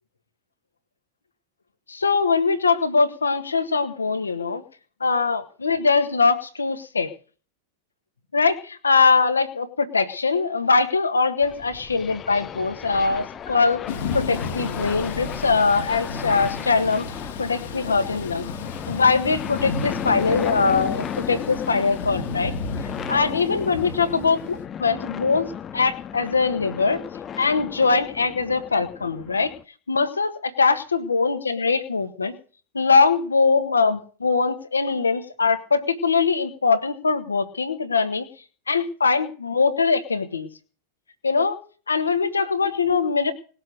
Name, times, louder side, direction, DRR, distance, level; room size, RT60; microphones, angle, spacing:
voice 1, 1.9-4.6 5.0-7.1 8.3-13.8 14.1-17.1 17.4-18.5 18.9-22.5 23.1-24.4 24.8-25.5 25.7-27.0 27.4-29.5 29.9-32.3 32.7-38.3 38.7-40.5 41.2-41.6 41.9-43.3, left 4 dB, 75° left, 9 dB, 1.6 m, -22 dB
sound 1, 11.4-29.6, left 8 dB, 25° left, 0.8 m, -34 dB
Thunder / Rain, 13.9-24.6, left 4 dB, 60° left, 1.7 m, -33 dB
19.5 x 7.7 x 6.5 m, 0.40 s
figure-of-eight pair, 90°, 0 cm